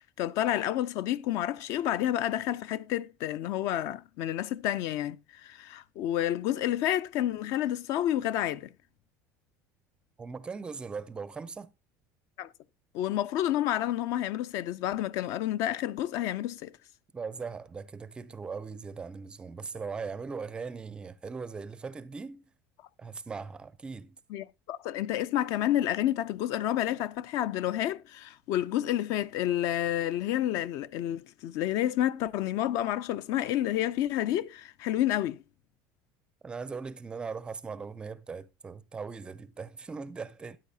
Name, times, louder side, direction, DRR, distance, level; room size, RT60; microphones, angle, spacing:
voice 1, 0.0-5.2 5.4-8.7 12.4-12.5 12.9-16.7 24.3-35.4, left 12 dB, 55° left, 0.4 m, -29 dB
voice 2, 10.2-11.7 17.1-22.4 23.0-24.2 36.4-40.6, right 5 dB, 15° right, 0.4 m, -39 dB
13.0 x 9.0 x 2.7 m
cardioid pair, 165°, 7 cm